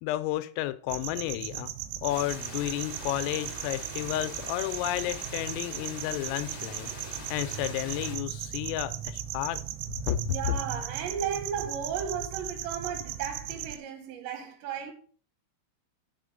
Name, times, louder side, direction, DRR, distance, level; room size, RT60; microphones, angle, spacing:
voice 1, 0.0-1.7 2.0-9.6 10.1-10.2 10.5-10.6, left 15 dB, 85° left, 3.3 m, -32 dB
sound 1, 0.9-13.8, right 11 dB, 90° right, 3.3 m, -37 dB
Water, 2.1-8.1, left 1 dB, 20° right, 0.6 m, -43 dB
voice 2, 10.3-14.9, right 8 dB, 75° right, 2.9 m, -34 dB
8.0 x 6.3 x 5.2 m
omnidirectional pair, 5.9 m